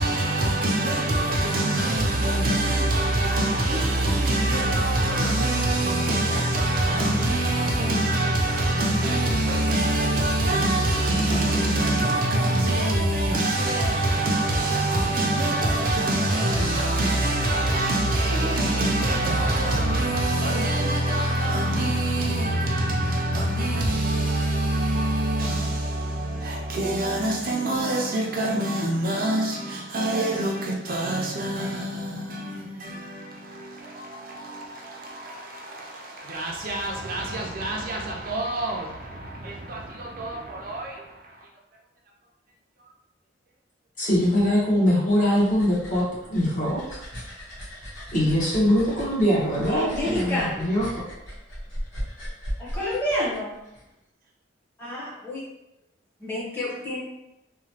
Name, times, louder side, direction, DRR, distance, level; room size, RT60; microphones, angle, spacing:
voice 1, 0.0-41.5, right 1 dB, 45° right, 0.4 m, -24 dB
voice 2, 44.0-47.0 48.1-51.0, equal, 40° left, 1.0 m, -22 dB
sound 1, 45.1-53.8, equal, 90° left, 1.0 m, -37 dB
voice 3, 49.7-50.7 52.7-53.5 54.8-55.4 56.2-57.0, left 1 dB, 10° left, 0.8 m, -28 dB
2.9 x 2.1 x 2.8 m
head